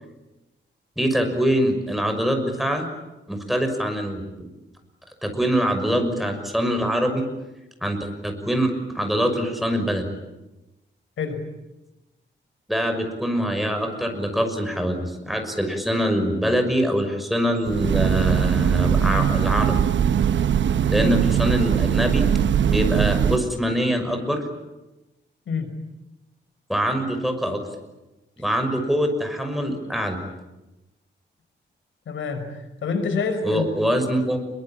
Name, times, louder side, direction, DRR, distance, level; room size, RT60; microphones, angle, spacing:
voice 1, 1.0-2.9 3.3-4.5 5.2-7.2 7.8-10.1 12.7-19.8 20.9-22.3 22.7-24.4 26.7-27.6 28.4-30.2 33.4-34.4, equal, ahead, 5 dB, 6.0 m, -24 dB
Train, 17.6-23.4, right 8 dB, 75° right, 1.0 m, -21 dB
voice 2, 25.5-25.8 32.1-33.7, left 4 dB, 90° left, 7 dB, 5.7 m, -27 dB
28.0 x 23.5 x 8.8 m, 1.0 s
wide cardioid pair, 130°, 19 cm